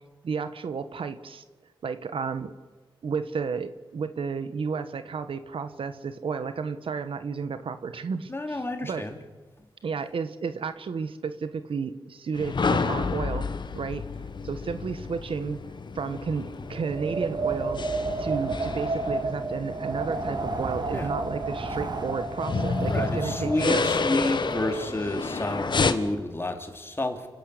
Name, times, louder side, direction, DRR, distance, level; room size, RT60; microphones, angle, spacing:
voice 1, 0.2-1.4 1.8-2.5 3.0-9.0 9.8-13.5 13.7-14.1 14.4-15.6 15.9-17.8 18.2-23.9, right 5 dB, 75° right, 11 dB, 1.3 m, -32 dB
voice 2, 8.3-9.2 20.9-21.1 21.8-21.9 22.9-27.3, left 2 dB, 25° left, 5 dB, 2.9 m, -30 dB
sound 1, 12.4-25.9, left 4 dB, 55° left, 1.4 m, -31 dB
Wind, 16.7-25.1, right 3 dB, 50° right, 2.2 m, -31 dB
29.5 x 11.5 x 8.4 m, 1.4 s
wide cardioid pair, 90°, 9 cm